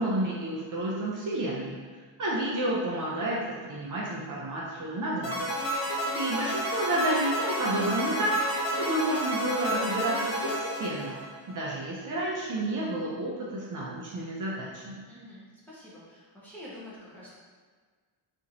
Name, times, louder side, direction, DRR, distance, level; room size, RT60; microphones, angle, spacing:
voice 1, 0.0-1.8 2.2-5.5 6.1-8.4 8.8-11.2 11.5-15.0, right 1 dB, 40° right, -5 dB, 0.5 m, -30 dB
sound 1, 5.2-11.5, equal, 60° left, 1.3 m, -31 dB
voice 2, 15.1-17.4, left 1 dB, 5° left, -9 dB, 0.6 m, -47 dB
2.9 x 2.5 x 3.8 m, 1.5 s
wide cardioid pair, 175°, 48 cm